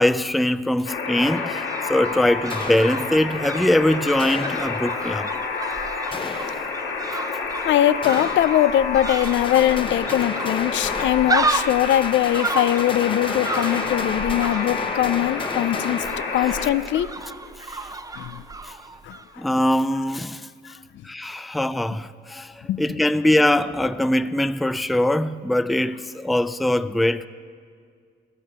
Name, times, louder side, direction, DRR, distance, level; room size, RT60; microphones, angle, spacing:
voice 1, 0.0-5.3 6.2-6.3 17.7-17.8 18.6-18.7 19.4-20.4 21.0-22.5 22.8-27.3, left 1 dB, ahead, 0.3 m, -22 dB
Alarm, 0.9-16.7, left 5 dB, 90° left, 2.7 m, -29 dB
sound 1, 1.1-19.3 19.6-19.7, right 3 dB, 20° right, 0.7 m, -32 dB
sound 2, 2.5-3.5 4.2-5.2 6.1-7.1 8.0-8.9 9.2-16.7, left 4 dB, 25° left, 0.8 m, -34 dB
voice 2, 7.6-16.0 16.3-17.4 18.1-18.4 19.0-19.2 22.7-22.8, left 12 dB, 70° left, 0.5 m, -21 dB
15.0 x 9.9 x 6.7 m
cardioid pair, 90°, 20 cm